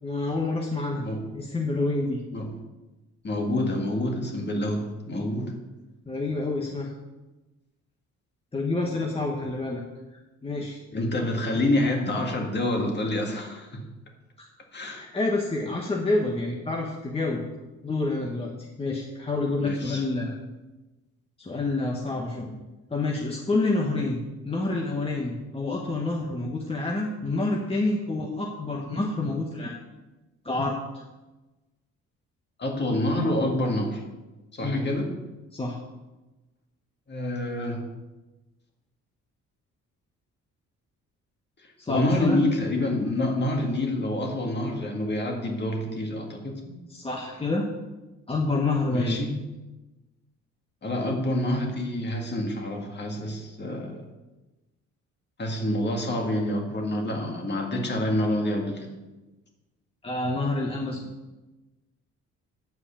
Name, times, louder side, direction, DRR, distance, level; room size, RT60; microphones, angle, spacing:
voice 1, 0.0-1.1 1.3-2.2 6.1-6.9 8.5-9.8 10.4-10.8 14.9-17.4 17.8-20.3 21.4-22.6 22.9-29.8 30.4-31.0 34.6-34.9 35.5-35.8 41.8-42.4 46.9-47.7 48.3-49.2 60.0-61.1, left 2 dB, 20° left, -1 dB, 1.1 m, -28 dB
voice 2, 3.2-5.5 10.9-13.8 14.7-15.0 19.6-20.0 32.6-34.0 34.5-35.1 37.1-37.8 41.6-46.8 48.9-49.4 50.8-54.1 55.4-58.9, left 1 dB, 35° left, 2 dB, 2.0 m, -27 dB
9.3 x 4.8 x 7.1 m, 1.1 s
cardioid pair, 90°, 30 cm